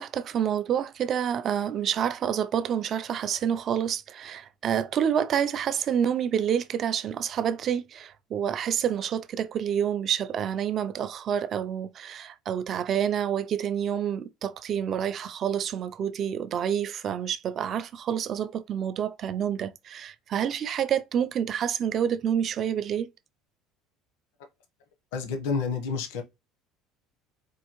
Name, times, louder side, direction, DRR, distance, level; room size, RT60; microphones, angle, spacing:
voice 1, 0.0-23.1, right 9 dB, 35° right, 0.3 m, -28 dB
voice 2, 25.1-26.2, left 5 dB, 90° left, 0.9 m, -29 dB
4.3 x 2.7 x 2.9 m
cardioid pair, 165°, 0 cm